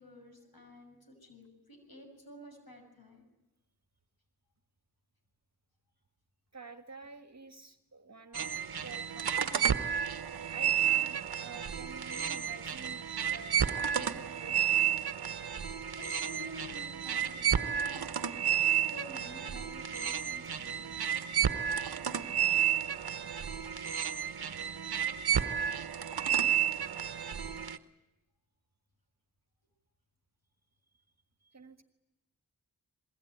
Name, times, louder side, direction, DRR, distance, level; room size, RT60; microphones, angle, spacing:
voice 1, 0.0-3.2 15.4-20.8, left 1 dB, 65° left, 5 dB, 6.6 m, -51 dB
voice 2, 6.5-8.5 8.8-9.8 10.5-14.9 31.4-31.8, right 4 dB, 45° right, 8 dB, 1.6 m, -49 dB
sound 1, 8.3-27.8, right 9 dB, 75° right, 1.1 m, -31 dB
24.5 x 21.5 x 9.3 m, 0.98 s
cardioid pair, 40°, 38 cm